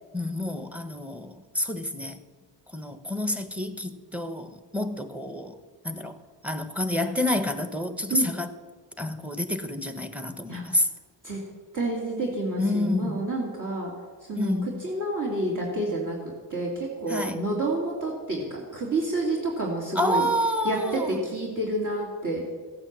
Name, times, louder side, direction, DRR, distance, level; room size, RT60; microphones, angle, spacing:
voice 1, 0.1-2.2 2.7-5.6 5.8-6.2 6.4-8.5 9.0-10.9 12.6-13.2 14.4-14.9 17.1-17.4 19.9-21.2, left 1 dB, 5° right, 8 dB, 1.2 m, -28 dB
voice 2, 11.7-13.9 14.3-14.5 14.8-16.2 16.5-20.3 20.6-22.4, right 1 dB, 45° right, -3 dB, 2.9 m, -29 dB
15.0 x 8.8 x 7.6 m, 1.4 s
wide cardioid pair, 95°, 43 cm